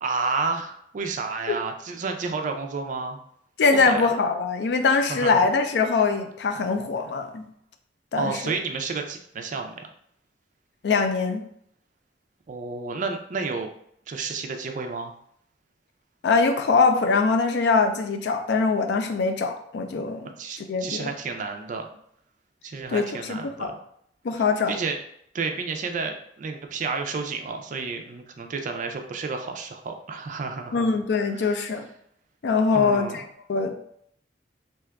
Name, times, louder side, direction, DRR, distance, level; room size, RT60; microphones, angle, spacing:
voice 1, 0.0-3.2 3.7-4.1 5.1-5.4 5.8-5.9 8.2-9.9 12.5-13.7 14.1-15.1 20.4-21.9 22.6-23.8 24.7-25.0 25.3-30.9 31.3-31.5 32.7-33.2, right 4 dB, 45° right, 5 dB, 0.4 m, -31 dB
voice 2, 3.6-7.5 8.1-8.5 10.8-11.5 16.2-20.3 20.7-21.1 22.9-23.7 24.2-24.7 30.7-31.9 32.4-33.2 33.5-33.7, left 4 dB, 70° left, 6 dB, 0.4 m, -23 dB
2.8 x 2.3 x 3.4 m, 0.69 s
head